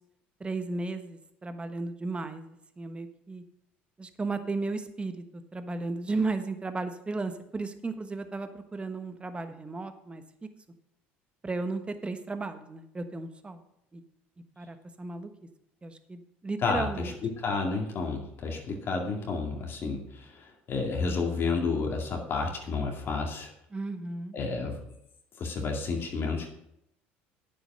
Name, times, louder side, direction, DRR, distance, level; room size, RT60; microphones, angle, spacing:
voice 1, 0.4-3.4 4.0-10.2 11.4-13.6 13.9-14.0 14.6-15.3 15.8-17.1 18.5-18.6 23.7-24.4, right 3 dB, 20° right, 9 dB, 1.2 m, -35 dB
voice 2, 16.6-23.5 24.3-24.9 25.4-26.5, left 4 dB, 45° left, 1 dB, 2.3 m, -31 dB
9.3 x 7.2 x 5.6 m, 0.80 s
hypercardioid pair, 75°, 5 cm